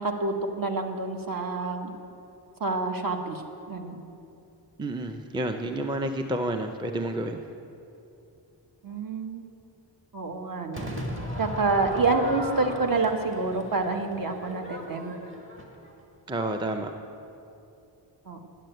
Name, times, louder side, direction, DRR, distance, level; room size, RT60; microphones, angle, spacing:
voice 1, 0.0-1.9 2.6-3.4 3.7-4.0 8.8-9.4 10.1-10.9 11.4-15.1 18.3-18.4, right 3 dB, 50° right, 4 dB, 1.2 m, -27 dB
voice 2, 4.8-7.4 16.3-16.9, right 1 dB, 10° right, 5 dB, 0.5 m, -30 dB
Crowd / Fireworks, 10.7-16.0, equal, 25° right, 1.7 m, -37 dB
11.0 x 7.8 x 9.1 m, 2.8 s
wide cardioid pair, 130°, 44 cm